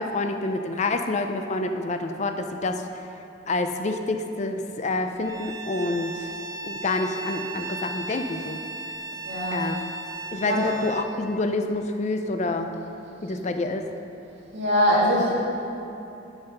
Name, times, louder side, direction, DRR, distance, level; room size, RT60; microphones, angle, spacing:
voice 1, 0.0-2.8 3.5-6.3 6.6-8.6 9.5-9.8 10.3-12.7 13.2-13.8, left 2 dB, 40° left, 6 dB, 0.5 m, -27 dB
Bowed string instrument, 5.2-11.1, right 3 dB, 20° right, 0.4 m, -36 dB
voice 2, 9.2-9.7 10.4-10.7 14.5-15.3, equal, 70° right, -5 dB, 2.2 m, -22 dB
10.5 x 6.0 x 5.5 m, 3.0 s
head